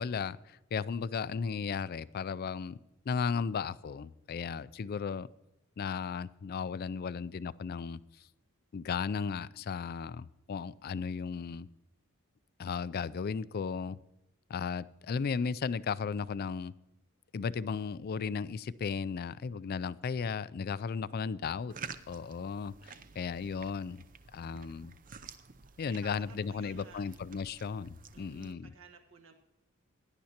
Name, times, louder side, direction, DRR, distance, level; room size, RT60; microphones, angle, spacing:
voice 1, 0.0-2.8 3.1-5.3 5.8-8.0 8.7-11.7 12.6-14.0 14.5-16.7 17.3-21.7 22.1-24.0 24.3-24.9 25.8-28.7, left 5 dB, 45° left, 18 dB, 0.3 m, -35 dB
sound 1, 21.7-28.5, right 6 dB, 40° right, 0.6 m, -50 dB
voice 2, 26.0-27.1 28.1-29.3, right 3 dB, 65° right, 6 dB, 1.4 m, -54 dB
16.5 x 10.5 x 2.9 m, 0.93 s
head